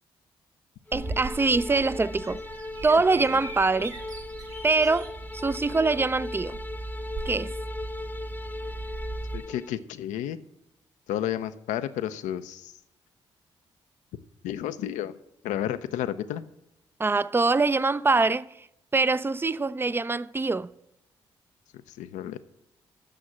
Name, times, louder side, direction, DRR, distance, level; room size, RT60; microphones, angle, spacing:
sound 1, 0.9-9.7, left 2 dB, 15° left, 0.7 m, -39 dB
voice 1, 0.9-2.4 2.8-4.0 4.6-6.6 7.3-7.5 17.0-18.5 18.9-20.7, right 3 dB, 20° right, 0.4 m, -24 dB
Bird vocalization bird call bird song, 0.9-9.4, right 2 dB, 65° right, 2.1 m, -38 dB
voice 2, 9.3-10.4 11.1-12.7 14.4-15.2 15.4-16.4 21.9-22.4, left 11 dB, 80° left, 0.5 m, -31 dB
8.6 x 6.4 x 7.4 m
hypercardioid pair, 45°, 13 cm